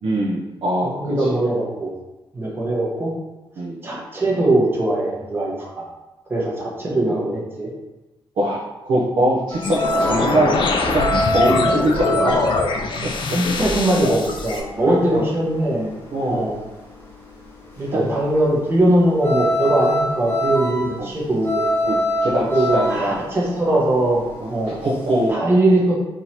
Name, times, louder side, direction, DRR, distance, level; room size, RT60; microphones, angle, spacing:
voice 1, 0.0-1.4 3.6-3.9 8.4-10.5 10.8-12.6 13.0-13.1 14.9-15.3 16.1-16.4 17.9-18.1 21.0-21.1 21.8-22.0 22.2-23.3 24.4-25.4, right 1 dB, 60° right, -5 dB, 0.8 m, -22 dB
voice 2, 0.8-1.9 2.3-3.1 3.8-5.8 6.3-7.7 13.3-16.0 16.3-16.6 17.8-21.7 22.5-24.8 25.3-25.9, right 1 dB, 25° right, -4 dB, 1.0 m, -21 dB
sound 1, 9.5-16.6 16.9-25.3, equal, 20° left, 0.8 m, -25 dB
sound 2, 9.6-14.6, left 3 dB, 55° left, 0.6 m, -23 dB
3.7 x 3.0 x 4.2 m, 1.0 s
wide cardioid pair, 175°, 10 cm